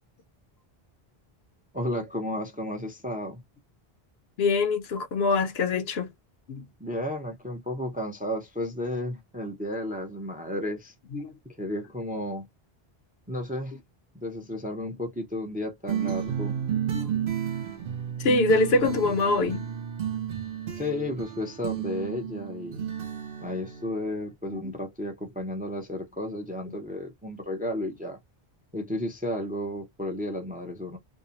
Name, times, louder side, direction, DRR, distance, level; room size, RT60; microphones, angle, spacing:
voice 1, 1.7-3.4 6.8-10.9 11.6-12.5 13.3-13.7 14.1-16.6 20.7-22.8 23.4-28.2 28.7-31.0, left 1 dB, 10° right, 0.4 m, -33 dB
voice 2, 4.4-6.1 6.5-6.6 11.1-11.3 16.0-16.1 16.9-17.1 18.2-19.7 24.5-24.6, left 3 dB, 75° left, 0.9 m, -24 dB
sound 1, 15.9-24.3, right 9 dB, 65° right, 0.9 m, -32 dB
2.6 x 2.1 x 2.7 m
omnidirectional pair, 1.0 m